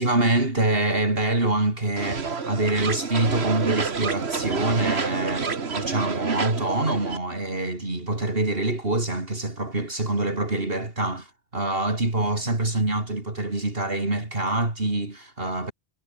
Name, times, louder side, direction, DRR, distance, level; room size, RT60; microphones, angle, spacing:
voice 1, 0.0-15.7, right 2 dB, 65° right, 4.4 m, -25 dB
sound 1, 2.0-7.2, right 5 dB, 90° right, 2.0 m, -28 dB
omnidirectional pair, 1.1 m